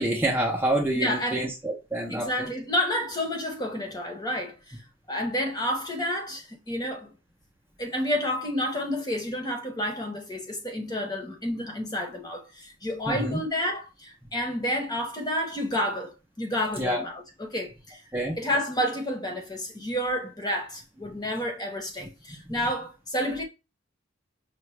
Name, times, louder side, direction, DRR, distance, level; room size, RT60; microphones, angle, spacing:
voice 1, 0.0-2.5 13.1-13.4 16.8-17.0 18.1-18.4, right 1 dB, 10° right, 0.7 m, -27 dB
voice 2, 0.9-1.4 2.1-4.8 5.1-7.1 7.8-18.0 18.4-23.4, equal, 20° left, 1.0 m, -30 dB
5.7 x 2.4 x 3.1 m
head